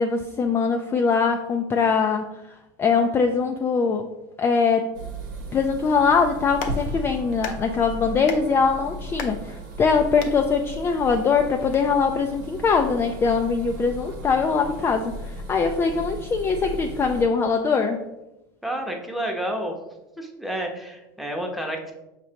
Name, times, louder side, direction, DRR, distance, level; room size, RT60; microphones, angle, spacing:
voice 1, 0.0-2.2 2.8-4.0 4.4-4.9 5.5-15.1 15.5-18.0, left 5 dB, 20° left, 4 dB, 0.3 m, -22 dB
sound 1, 4.9-17.2, right 1 dB, 90° right, 1.0 m, -36 dB
Clapping, 6.3-11.8, left 5 dB, 65° left, 0.7 m, -39 dB
voice 2, 18.6-19.8 20.2-21.9, right 1 dB, ahead, 1 dB, 0.8 m, -30 dB
5.8 x 3.2 x 2.8 m, 0.95 s
supercardioid pair, 115°, 10 cm